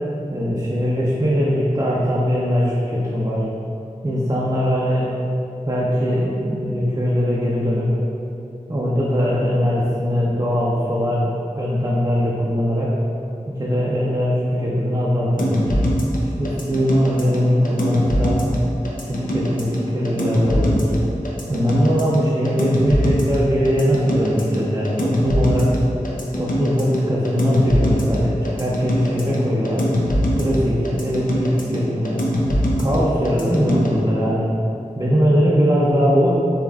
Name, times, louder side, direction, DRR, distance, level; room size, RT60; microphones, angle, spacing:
voice 1, 0.3-3.4 4.0-5.1 5.6-8.0 8.7-13.0 13.5-15.8 16.4-18.4 19.1-20.9 21.5-25.7 26.4-30.1 30.4-32.2 32.8-34.5 34.9-36.4, equal, 30° right, -7 dB, 0.6 m, -20 dB
sound 1, 15.4-33.9, equal, 80° left, 0.7 m, -22 dB
7.0 x 3.0 x 2.4 m, 2.8 s
wide cardioid pair, 65°, 14 cm